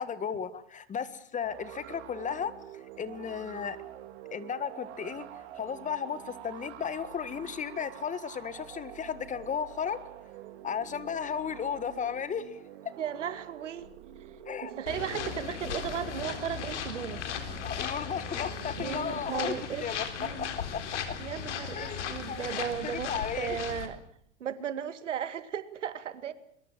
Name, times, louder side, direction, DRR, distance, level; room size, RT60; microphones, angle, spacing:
voice 1, 0.0-2.5 3.0-3.8 4.3-5.2 5.6-10.0 10.6-12.6 14.5-14.7 17.6-19.5 19.8-20.8 21.7-22.4 22.9-23.6, left 7 dB, 20° left, 14 dB, 1.7 m, -34 dB
sound 1, 1.4-19.8, right 11 dB, 65° right, 3.3 m, -47 dB
voice 2, 13.0-13.9 14.6-17.2 18.8-19.9 20.2-20.5 21.2-24.0 24.4-26.3, right 8 dB, 85° right, 12 dB, 2.1 m, -35 dB
sound 2, 14.9-23.9, left 7 dB, 75° left, 4.1 m, -37 dB
23.0 x 22.0 x 7.5 m, 0.68 s
hypercardioid pair, 110°, 36 cm